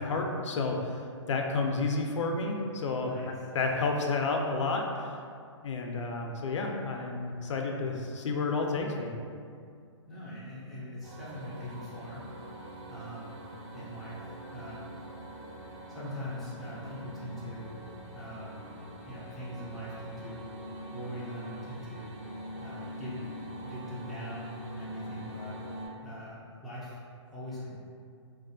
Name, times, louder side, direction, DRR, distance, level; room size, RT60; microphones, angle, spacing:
voice 1, 0.0-5.2 5.6-9.1, left 3 dB, 75° left, 2 dB, 0.4 m, -31 dB
voice 2, 10.1-12.3 12.9-13.4 13.7-14.8 15.9-18.6 19.1-20.4 20.9-22.1 22.6-23.2 23.6-25.6 26.0-27.0 27.3-27.8, equal, ahead, -12 dB, 0.3 m, -42 dB
sound 1, 11.0-25.9, equal, 75° right, 0.9 m, -44 dB
2.4 x 2.1 x 2.6 m, 2.3 s
hypercardioid pair, 150°, 16 cm